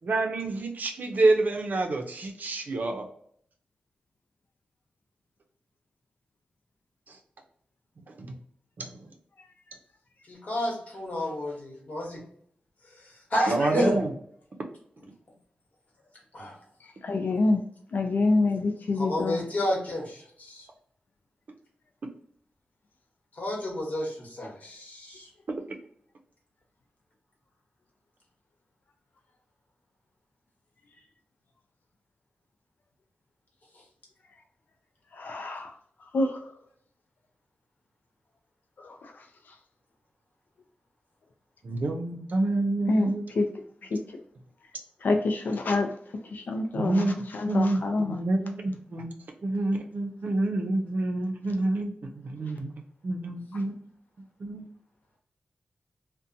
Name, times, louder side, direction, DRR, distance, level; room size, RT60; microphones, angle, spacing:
voice 1, 0.0-3.1 7.1-7.2 8.1-8.4 8.8-8.9 13.5-14.1 41.6-43.3 46.7-49.1 49.4-52.7 53.0-53.8 54.4-54.6, right 2 dB, 60° right, 4 dB, 0.5 m, -28 dB
voice 2, 10.3-12.2 12.9-14.0 16.3-16.5 19.0-20.7 23.3-25.3, left 1 dB, 50° left, -2 dB, 1.1 m, -31 dB
voice 3, 17.0-17.6 17.9-19.5 35.1-35.7 36.1-36.4 38.8-39.2 42.9-43.5 43.9-44.0 45.0-45.9 46.2-48.2, left 2 dB, 70° left, 4 dB, 0.4 m, -27 dB
2.7 x 2.1 x 2.5 m, 0.64 s
wide cardioid pair, 105°, 3 cm